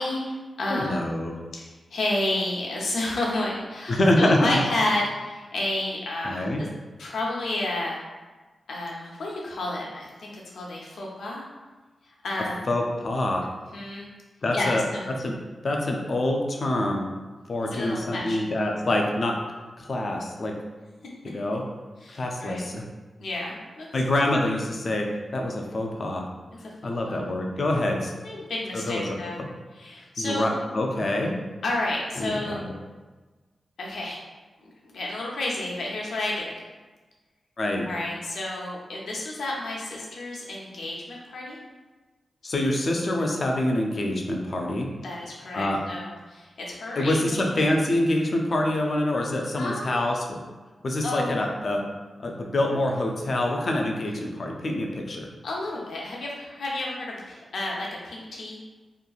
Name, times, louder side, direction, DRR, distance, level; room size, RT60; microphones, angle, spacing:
voice 1, 0.0-1.0 1.6-6.7 7.0-8.0 8.7-11.5 12.2-12.7 13.7-14.1 14.5-15.1 17.6-18.6 22.0-22.6 23.2-23.9 26.8-27.2 28.2-29.4 29.8-30.6 31.6-32.6 33.8-34.2 34.6-36.5 37.9-41.6 45.0-47.2 49.6-50.1 51.0-51.4 55.4-58.6, left 2 dB, 85° left, -3 dB, 0.6 m, -31 dB
voice 2, 0.7-1.3 3.9-4.5 6.2-6.6 12.7-13.4 14.4-15.3 15.6-17.0 17.5-19.4 19.8-20.5 21.2-21.6 22.2-22.8 23.9-25.1 25.3-26.3 26.8-28.1 28.7-29.5 30.2-31.3 32.2-32.7 37.6-37.9 42.4-44.9 45.5-45.8 47.0-50.4 50.8-51.8 52.2-55.3, left 1 dB, 45° left, 1 dB, 0.4 m, -26 dB
2.9 x 2.5 x 2.3 m, 1.3 s
wide cardioid pair, 130°, 0 cm